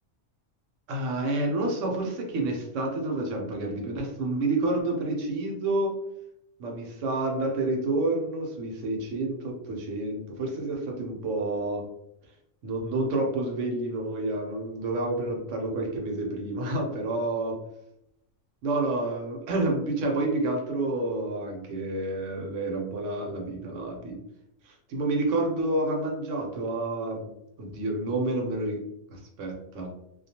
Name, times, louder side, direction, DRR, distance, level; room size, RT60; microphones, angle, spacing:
voice 1, 0.9-6.0 6.6-11.9 12.6-17.6 18.6-24.2 24.7-27.3 27.6-28.8 29.1-29.9, right 2 dB, 80° right, 2 dB, 1.0 m, -29 dB
2.3 x 2.2 x 2.7 m, 0.80 s
omnidirectional pair, 1.3 m